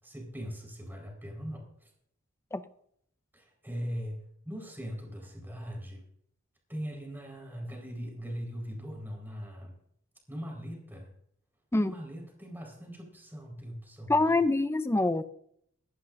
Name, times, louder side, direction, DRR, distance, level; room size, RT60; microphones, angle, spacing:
voice 1, 0.0-1.9 3.3-6.0 6.7-9.7 10.3-11.1 11.8-14.4, equal, 10° right, 0 dB, 4.5 m, -40 dB
voice 2, 14.1-15.2, left 2 dB, 15° left, 12 dB, 0.5 m, -25 dB
25.0 x 11.5 x 2.6 m, 0.71 s
head